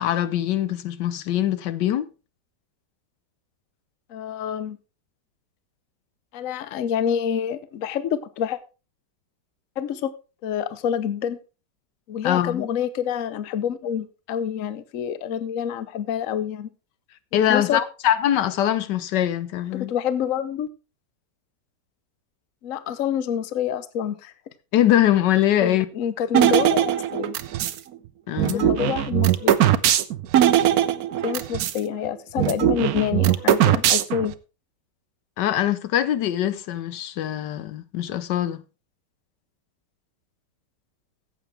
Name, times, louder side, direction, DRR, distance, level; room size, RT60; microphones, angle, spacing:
voice 1, 0.0-2.1 12.2-12.7 17.3-19.9 24.7-25.9 28.3-28.7 35.4-38.6, left 11 dB, 80° left, 1.3 m, -22 dB
voice 2, 4.1-4.8 6.3-8.6 9.8-10.1 10.4-11.4 12.1-16.7 17.3-17.8 19.7-20.7 22.6-24.3 25.6-27.4 28.4-29.6 31.2-34.3, left 9 dB, 55° left, 1.1 m, -27 dB
sound 1, 26.3-27.8 28.4-31.8 32.1-32.2 32.4-34.3, right 12 dB, 65° right, 1.0 m, -20 dB
14.5 x 8.1 x 3.3 m
omnidirectional pair, 1.9 m